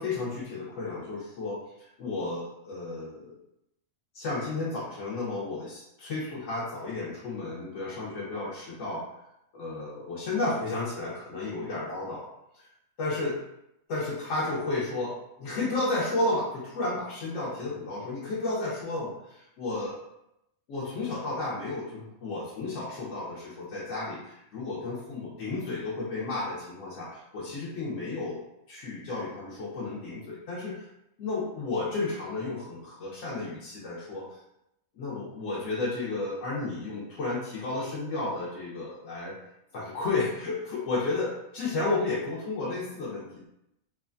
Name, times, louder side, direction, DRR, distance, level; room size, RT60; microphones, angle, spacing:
voice 1, 0.0-3.3 4.1-9.1 9.5-12.2 12.5-12.7 13.0-13.4 13.9-19.9 20.7-28.4 28.7-30.8 31.2-34.4 35.0-39.4 39.7-43.5, left 2 dB, 70° left, -7 dB, 1.0 m, -32 dB
3.1 x 2.1 x 2.4 m, 0.83 s
omnidirectional pair, 1.4 m